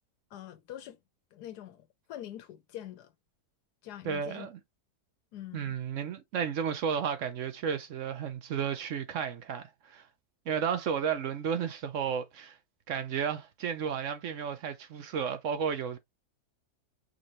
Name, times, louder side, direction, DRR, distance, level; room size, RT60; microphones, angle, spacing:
voice 1, 0.3-1.0 1.3-3.1 3.8-4.5 5.3-5.8, left 12 dB, 85° left, 1.3 m, -44 dB
voice 2, 4.0-4.5 5.5-10.0 10.5-12.6 12.9-16.0, right 7 dB, 60° right, 0.9 m, -33 dB
5.0 x 2.7 x 3.1 m
omnidirectional pair, 1.7 m